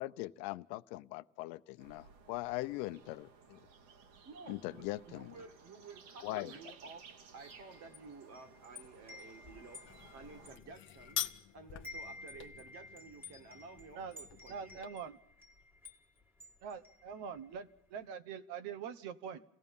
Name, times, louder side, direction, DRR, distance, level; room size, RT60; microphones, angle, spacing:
voice 1, 0.0-3.6 4.5-5.3 6.2-6.5, left 18 dB, 75° left, 13 dB, 0.9 m, -41 dB
sound 1, 1.8-10.6, right 5 dB, 75° right, 2.9 m, -58 dB
voice 2, 4.2-7.1 7.3-9.8 10.1-11.2 11.5-14.8, right 4 dB, 35° right, 8 dB, 2.0 m, -53 dB
Wind chime, 7.4-11.4 11.7-17.6, left 2 dB, 5° right, 1.8 m, -53 dB
sound 2, 9.8-14.9, left 11 dB, 25° left, 0.9 m, -45 dB
voice 3, 14.5-15.2 16.6-19.4, right 7 dB, 55° right, 12 dB, 1.3 m, -44 dB
28.5 x 17.0 x 5.5 m, 0.76 s
cardioid pair, 170°, 49 cm